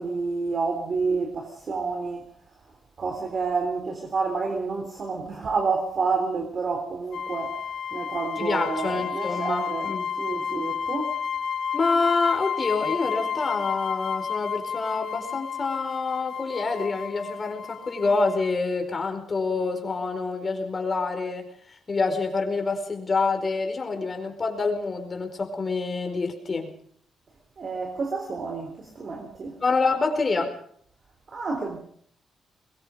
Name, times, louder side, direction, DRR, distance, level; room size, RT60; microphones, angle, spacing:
voice 1, 0.0-2.3 3.0-7.6 7.9-11.2 27.6-29.6 31.3-31.8, right 4 dB, 45° right, 3.7 m, -29 dB
sound 1, 7.1-18.6, left 7 dB, 60° left, 1.9 m, -31 dB
voice 2, 8.4-10.1 11.7-26.7 29.6-30.6, left 4 dB, 35° left, 4.9 m, -27 dB
23.0 x 22.0 x 5.2 m
cardioid pair, 110°, 0 cm